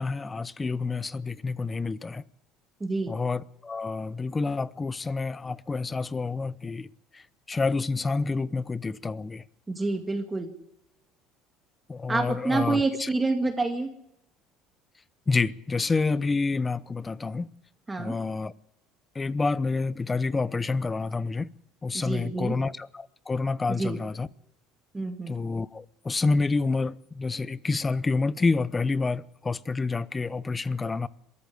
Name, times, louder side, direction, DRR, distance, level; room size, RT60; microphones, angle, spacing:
voice 1, 0.0-2.2 3.1-6.9 7.5-9.4 11.9-13.1 15.3-17.5 18.0-18.5 19.2-21.5 21.8-24.3 25.3-31.1, left 4 dB, 20° left, 0.7 m, -28 dB
voice 2, 2.8-3.2 9.7-10.5 12.1-13.9 17.9-18.2 21.9-22.5 23.7-24.0 24.9-25.4, right 3 dB, 15° right, 2.1 m, -28 dB
21.5 x 14.0 x 9.5 m
supercardioid pair, 110°, 0 cm